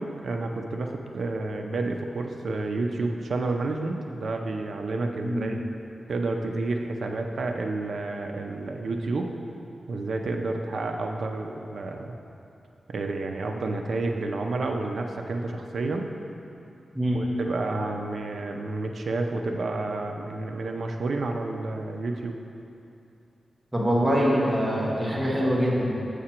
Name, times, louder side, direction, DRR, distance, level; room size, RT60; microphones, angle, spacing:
voice 1, 0.0-5.6 6.1-9.3 9.9-12.1 12.9-16.1 17.1-22.3, right 2 dB, 65° right, 3 dB, 0.5 m, -30 dB
voice 2, 23.7-25.9, equal, 10° right, -5 dB, 1.0 m, -24 dB
7.4 x 5.0 x 4.4 m, 2.8 s
wide cardioid pair, 155°, 0 cm